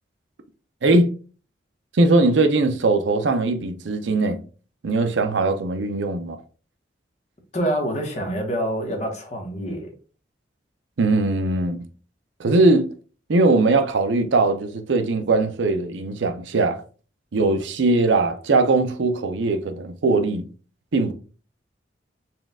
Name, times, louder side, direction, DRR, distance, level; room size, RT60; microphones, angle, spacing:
voice 1, 1.9-4.4 4.8-6.4 11.0-11.9 12.4-12.9 13.3-16.8 17.3-20.5 20.9-21.1, right 2 dB, 85° right, 0.6 m, -20 dB
voice 2, 7.5-9.9, right 1 dB, 40° left, 0.9 m, -26 dB
4.2 x 2.3 x 3.5 m
head